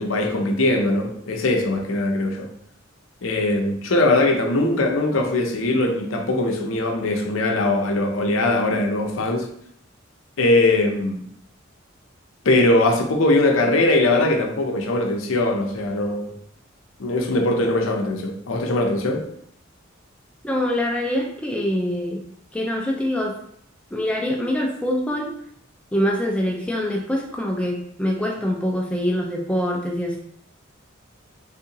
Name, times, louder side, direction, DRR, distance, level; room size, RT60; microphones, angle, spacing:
voice 1, 0.0-2.5 3.2-9.5 10.4-11.2 12.4-16.3 17.0-19.3, left 2 dB, 80° left, 0.6 m, -21 dB
voice 2, 20.4-22.2 22.5-23.3 23.9-25.3 25.9-30.2, left 1 dB, 5° left, 0.3 m, -24 dB
3.5 x 2.7 x 2.8 m
head